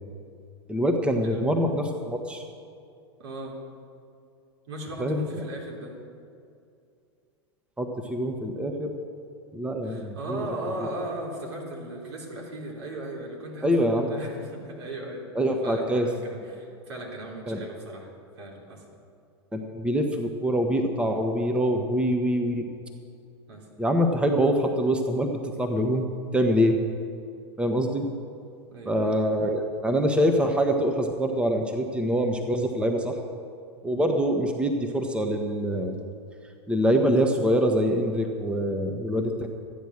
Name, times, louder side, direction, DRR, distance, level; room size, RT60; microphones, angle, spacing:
voice 1, 0.7-2.4 5.0-5.2 7.8-8.9 9.5-10.4 13.6-14.1 15.3-16.1 17.5-17.6 19.5-22.7 23.8-26.0 26.3-26.8 27.6-28.1 28.9-33.2 33.8-36.0 36.7-39.5, equal, 5° right, 4 dB, 1.1 m, -24 dB
voice 2, 3.2-3.5 4.7-5.9 9.8-18.8 23.5-23.7 28.7-29.2, right 1 dB, 70° right, -2 dB, 3.4 m, -37 dB
13.5 x 9.2 x 6.5 m, 2.4 s
hypercardioid pair, 95°, 15 cm